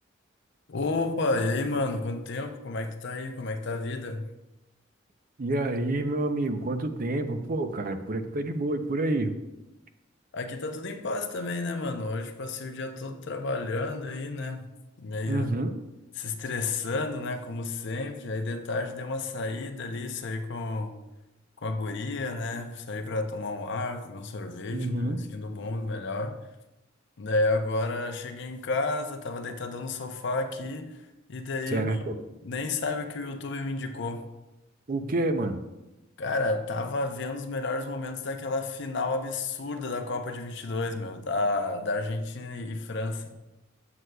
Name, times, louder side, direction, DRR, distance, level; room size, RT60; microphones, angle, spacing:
voice 1, 0.7-4.3 10.3-14.7 15.0-15.5 16.1-21.0 21.6-26.4 27.2-34.3 36.2-43.3, left 2 dB, 65° left, 0.6 m, -31 dB
voice 2, 5.4-9.3 15.3-15.7 24.7-25.3 31.7-32.1 34.9-35.6, right 2 dB, 45° right, 0.5 m, -28 dB
7.7 x 7.6 x 2.3 m
head